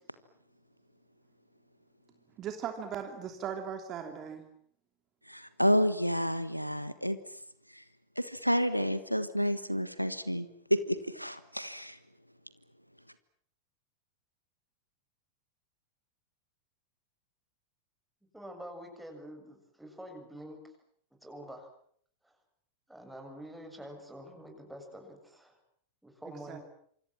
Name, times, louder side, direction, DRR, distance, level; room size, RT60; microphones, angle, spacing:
voice 1, 2.4-4.4 26.5-26.6, right 8 dB, 30° right, 6 dB, 3.0 m, -38 dB
voice 2, 5.3-7.2 7.8-7.9 8.2-12.0, equal, 90° right, 13 dB, 1.4 m, -30 dB
voice 3, 18.3-20.6 21.2-21.7 22.2-22.3 22.9-25.6 26.0-26.6, equal, 5° right, 4 dB, 7.3 m, -46 dB
27.5 x 26.0 x 7.5 m, 0.65 s
figure-of-eight pair, 90°, 0 cm